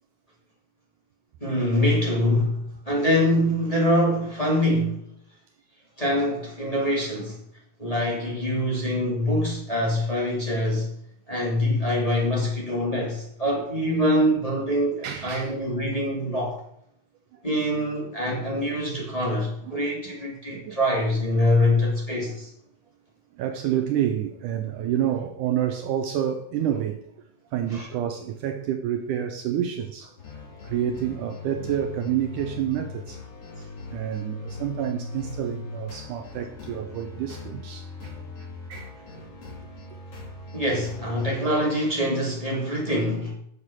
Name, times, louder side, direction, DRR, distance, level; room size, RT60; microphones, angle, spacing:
voice 1, 1.4-5.0 6.0-7.4 7.8-10.9 11.3-16.6 17.4-22.5 27.7-27.9 40.5-43.3, left 1 dB, 10° left, 2.6 m, -24 dB
voice 2, 15.0-15.6 17.3-17.4 20.1-20.2 20.5-20.8 22.3-22.4 23.3-27.0 27.5-30.3 30.6-33.2 33.6-39.2 39.9-40.0, right 10 dB, 75° right, 2.1 m, -29 dB
sound 1, 30.2-41.3, left 4 dB, 45° left, 3.2 m, -39 dB
8.4 x 6.6 x 7.3 m
omnidirectional pair, 4.0 m